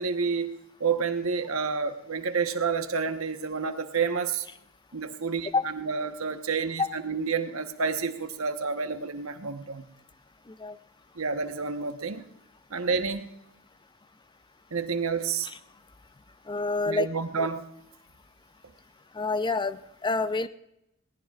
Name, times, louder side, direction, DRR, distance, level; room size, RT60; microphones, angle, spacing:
voice 1, 0.0-4.5 4.9-9.9 11.1-12.3 12.7-13.3 14.7-15.5 16.9-17.6, right 5 dB, 90° right, 7 dB, 1.1 m, -29 dB
voice 2, 16.5-17.1 17.4-17.5 19.1-20.5, left 3 dB, 20° left, 12 dB, 0.6 m, -28 dB
22.0 x 18.0 x 2.4 m, 0.86 s
head